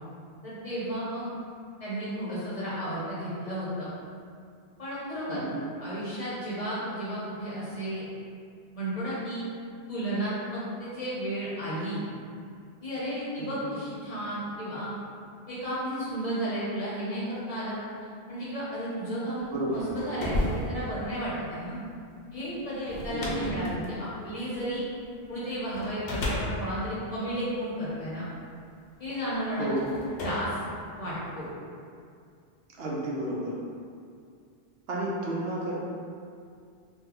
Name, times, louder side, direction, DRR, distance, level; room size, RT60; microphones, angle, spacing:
voice 1, 0.4-1.2 1.8-3.9 4.8-5.4 5.8-8.1 8.7-9.5 9.9-12.0 12.8-14.9 15.5-17.8 18.3-21.8 22.3-24.8 25.3-28.2 29.0-29.7 30.2-30.6 31.0-31.5, equal, 40° left, -9 dB, 0.7 m, -33 dB
voice 2, 5.3-5.7 13.4-13.8 19.5-19.8 23.1-23.5 29.5-29.8 32.8-33.6 34.9-35.8, right 1 dB, 70° right, -4 dB, 0.8 m, -32 dB
sound 1, 19.5-25.1 25.7-28.2 29.0-29.1 29.8-31.5, left 1 dB, 80° left, 0.9 m, -35 dB
2.7 x 2.2 x 3.4 m, 2.3 s
omnidirectional pair, 1.1 m